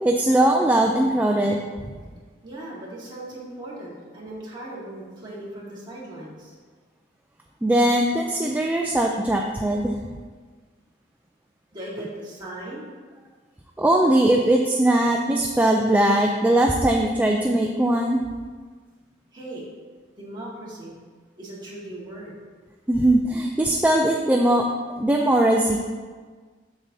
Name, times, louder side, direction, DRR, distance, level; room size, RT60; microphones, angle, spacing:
voice 1, 0.0-1.6 7.6-9.9 13.8-18.2 22.9-24.7 25.0-25.8, right 1 dB, 10° right, 1 dB, 0.3 m, -20 dB
voice 2, 2.4-6.6 11.7-12.8 19.3-19.7 20.2-21.0 21.4-22.4, right 1 dB, 25° right, -6 dB, 1.6 m, -38 dB
7.1 x 6.5 x 2.7 m, 1.5 s
head